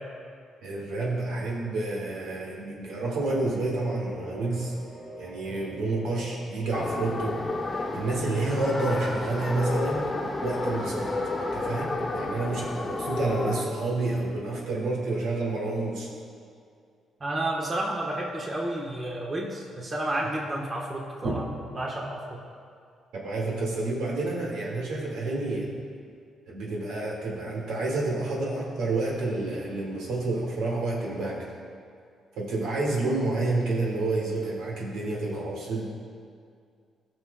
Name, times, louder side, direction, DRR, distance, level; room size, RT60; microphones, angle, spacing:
voice 1, 0.6-4.7 5.2-7.4 7.7-10.1 10.4-11.1 11.4-16.1 21.2-21.3 23.2-25.7 26.5-31.4 32.4-35.8, right 2 dB, 85° right, -3 dB, 1.9 m, -29 dB
sound 1, 3.2-16.0, equal, 55° right, 1.1 m, -48 dB
sound 2, 6.7-13.6, left 2 dB, 25° left, 1.1 m, -31 dB
voice 2, 17.2-21.4 21.7-22.4, right 1 dB, 30° right, -2 dB, 1.1 m, -31 dB
16.5 x 6.1 x 2.2 m, 2.2 s
cardioid pair, 90°, 0 cm